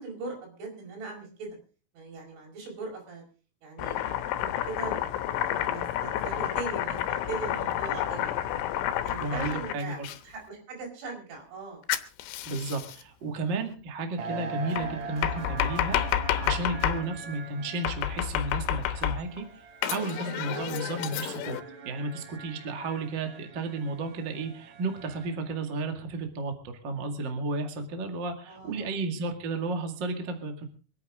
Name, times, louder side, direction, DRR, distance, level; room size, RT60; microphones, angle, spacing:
voice 1, 0.0-1.6 1.9-3.2 3.6-8.3 9.0-10.0 10.2-11.8 13.4-13.5 20.5-20.8 28.5-29.0, right 3 dB, 85° right, 0 dB, 7.5 m, -40 dB
Domestic sounds home sounds, 3.8-10.2 11.9-13.0 14.8-17.0 17.8-19.4 19.8-21.6, left 11 dB, 90° left, 3.4 m, -30 dB
voice 2, 9.2-10.0 12.4-16.0 16.4-19.4 19.8-21.6 21.8-30.6, right 3 dB, 40° right, 5 dB, 1.6 m, -33 dB
sound 1, 14.2-25.6, right 5 dB, 60° right, 1.9 m, -42 dB
26.0 x 9.3 x 3.7 m, 0.37 s
omnidirectional pair, 5.3 m